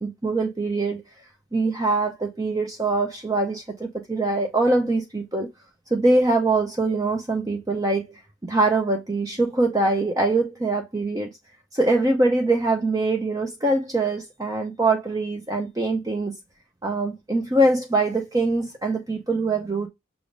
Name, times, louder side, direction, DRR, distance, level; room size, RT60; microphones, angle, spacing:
voice 1, 0.0-1.0 1.5-5.5 5.9-8.1 8.4-11.3 11.7-16.3 16.8-19.9, right 2 dB, 20° right, 0.5 m, -23 dB
5.9 x 3.4 x 2.5 m
head